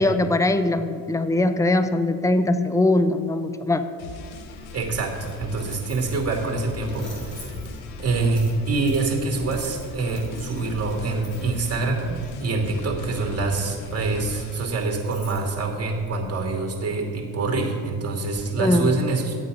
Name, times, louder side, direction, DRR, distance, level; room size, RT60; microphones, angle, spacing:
voice 1, 0.0-3.8 18.6-18.9, left 2 dB, 10° left, 10 dB, 0.7 m, -21 dB
sound 1, 4.0-14.6, left 3 dB, 90° left, 0.9 m, -40 dB
Coin (dropping), 4.2-16.5, equal, 45° left, 2.9 m, -42 dB
voice 2, 4.7-7.5 8.0-19.4, right 3 dB, 40° right, 1 dB, 2.6 m, -25 dB
11.5 x 8.0 x 5.5 m, 2.3 s
supercardioid pair, 70°, 38 cm